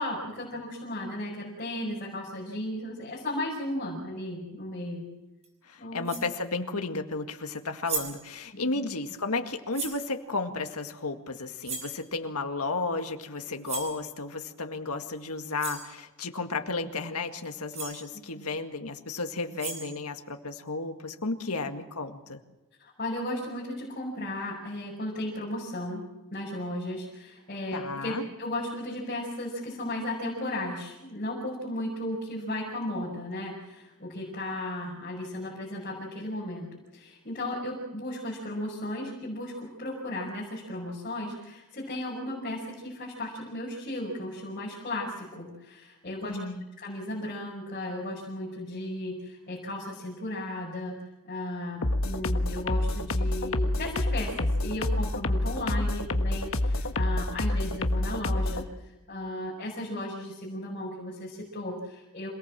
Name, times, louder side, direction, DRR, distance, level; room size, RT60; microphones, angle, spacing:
voice 1, 0.0-5.0 5.8-6.1 8.5-8.6 18.3-18.5 21.4-21.6 22.8-26.0 26.3-46.4 46.8-51.0 51.2-62.3, left 1 dB, 40° left, -4 dB, 5.7 m, -35 dB
sound 1, 5.4-5.5 6.0-6.4 7.6-7.7 7.8-8.3 9.7-10.0 11.6-12.0 13.6-14.0 15.2-15.3 15.6-15.9 17.4-17.5 17.7-18.0 19.4-20.0, right 4 dB, 30° right, 5.8 m, -36 dB
voice 2, 5.6-22.4 27.7-28.2 46.2-46.6, left 3 dB, 90° left, 6 dB, 2.0 m, -33 dB
sound 2, 51.8-58.6, left 1 dB, 65° left, 1.4 m, -27 dB
27.5 x 18.5 x 7.6 m, 1.0 s
head